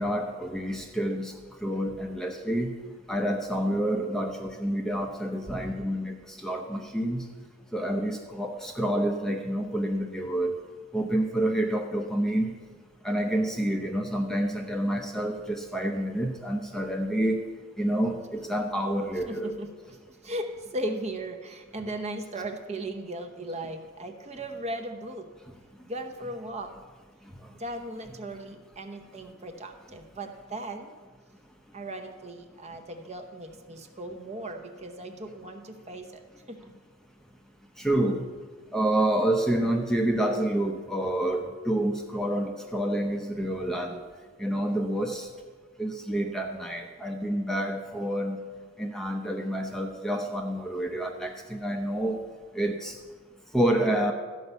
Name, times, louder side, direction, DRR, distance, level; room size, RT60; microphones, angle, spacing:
voice 1, 0.0-1.3 1.6-2.7 3.1-7.2 7.7-10.6 10.9-12.5 13.0-17.4 17.8-19.5 37.8-38.2 38.7-44.0 44.4-45.3 45.8-48.4 48.8-52.2 52.5-53.0 53.5-54.1, right 1 dB, ahead, 2 dB, 0.7 m, -28 dB
voice 2, 19.3-25.3 25.8-26.7 27.5-30.9 31.7-36.2 36.5-36.7, right 1 dB, 30° right, 5 dB, 0.8 m, -37 dB
13.5 x 5.5 x 8.1 m, 1.5 s
head